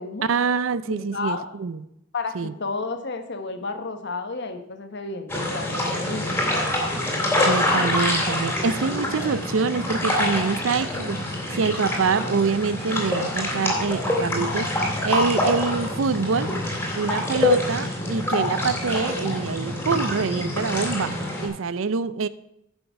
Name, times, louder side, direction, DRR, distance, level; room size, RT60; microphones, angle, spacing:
voice 1, 0.2-1.8 2.3-2.5 7.4-11.2 11.5-16.5 16.9-22.3, right 5 dB, 85° right, 0.5 m, -25 dB
voice 2, 0.8-1.5 2.1-6.4, left 3 dB, 60° left, 1.3 m, -32 dB
sound 1, 5.3-21.5, left 1 dB, 10° left, 3.2 m, -25 dB
10.5 x 7.0 x 5.8 m
head